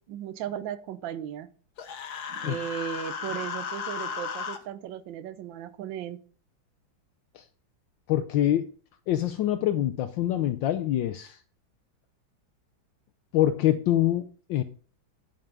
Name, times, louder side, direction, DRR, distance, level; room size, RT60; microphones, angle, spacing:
voice 1, 0.1-1.5 2.3-6.2, right 10 dB, 75° right, 1.5 m, -36 dB
Human voice, 1.8-4.6, left 6 dB, 55° left, 1.5 m, -35 dB
voice 2, 8.1-8.7 9.1-11.4 13.3-14.6, left 12 dB, 75° left, 1.3 m, -25 dB
11.0 x 5.8 x 5.2 m
omnidirectional pair, 2.2 m